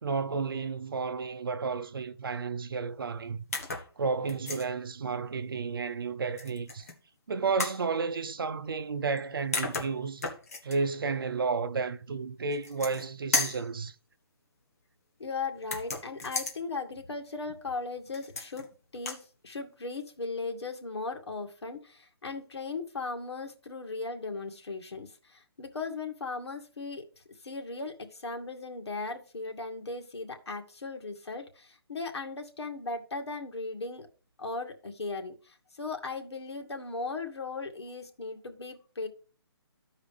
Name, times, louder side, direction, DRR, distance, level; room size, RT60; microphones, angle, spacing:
voice 1, 0.0-3.4 4.0-6.9 7.3-10.3 10.6-13.9, right 4 dB, 55° right, 0.8 m, -32 dB
sound 1, 3.5-3.9 4.3-4.7 6.4-7.0 7.6-7.8 9.2-9.3 9.5-10.8 12.5-13.1 13.3-13.7 15.6-16.6 18.1-18.7 19.0-19.2, left 3 dB, 35° left, 1.4 m, -33 dB
voice 2, 15.2-18.7 18.9-19.2 19.4-27.0 27.4-34.1 34.4-39.1, left 3 dB, 85° left, 2.2 m, -37 dB
14.5 x 4.9 x 3.4 m
hypercardioid pair, 180°, 14 cm